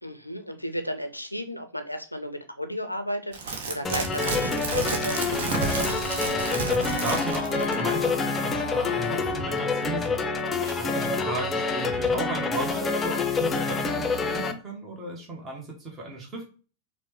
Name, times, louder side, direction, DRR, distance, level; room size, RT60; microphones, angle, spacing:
voice 1, 0.0-5.2 10.6-11.0, equal, 90° left, 7 dB, 0.4 m, -34 dB
sound 1, 3.3-7.9 8.2-8.3, right 4 dB, 55° right, 0.8 m, -31 dB
sound 2, 3.8-14.5, left 4 dB, 20° left, 0.4 m, -27 dB
Wind instrument woodwind instrument, 5.5-10.1, left 2 dB, 85° right, 0.4 m, -39 dB
voice 2, 6.3-10.3 10.8-16.4, right 2 dB, 20° right, -1 dB, 1.0 m, -35 dB
4.6 x 2.1 x 2.9 m, 0.36 s
figure-of-eight pair, 90°, 0 cm